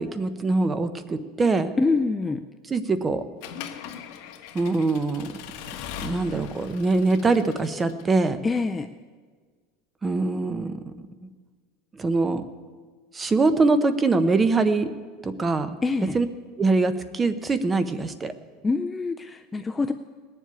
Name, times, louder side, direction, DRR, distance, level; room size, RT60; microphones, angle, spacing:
voice 1, 0.0-1.7 2.7-3.2 4.5-5.3 6.0-8.4 10.0-10.9 11.9-12.4 13.1-14.9 15.2-15.8 16.1-16.3 16.6-18.3, right 3 dB, 15° right, 11 dB, 0.7 m, -23 dB
voice 2, 1.8-2.4 8.4-8.9 15.8-16.2 18.6-19.9, left 3 dB, 10° left, 8 dB, 0.4 m, -25 dB
Accelerating revving vroom / Mechanisms, 3.4-8.3, left 8 dB, 55° left, 1.4 m, -40 dB
19.0 x 7.5 x 9.4 m, 1.5 s
supercardioid pair, 170°, 0 cm